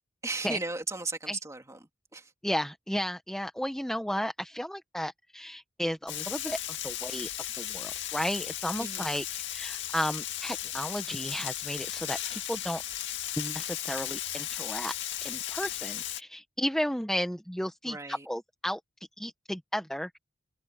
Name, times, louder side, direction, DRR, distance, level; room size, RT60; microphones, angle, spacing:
voice 1, 0.2-2.3 8.8-9.1 17.8-18.3, right 3 dB, 15° right, 2.9 m, -36 dB
voice 2, 2.4-12.8 13.4-14.9 15.2-18.8 19.2-20.2, equal, 5° left, 0.8 m, -34 dB
Frying (food), 6.1-16.2, left 12 dB, 65° left, 2.1 m, -36 dB
head